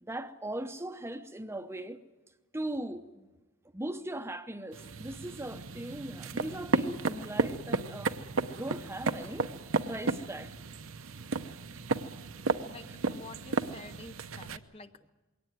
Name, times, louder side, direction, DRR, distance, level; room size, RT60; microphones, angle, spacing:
voice 1, 0.0-2.0 2.5-3.3 3.7-8.2 8.5-9.5 9.9-10.5 12.8-13.0, right 1 dB, 10° right, 0.8 m, -39 dB
sound 1, 4.7-14.6, right 3 dB, 65° right, 0.9 m, -34 dB
voice 2, 12.6-15.1, left 3 dB, 25° left, 0.6 m, -49 dB
22.0 x 18.0 x 9.4 m
head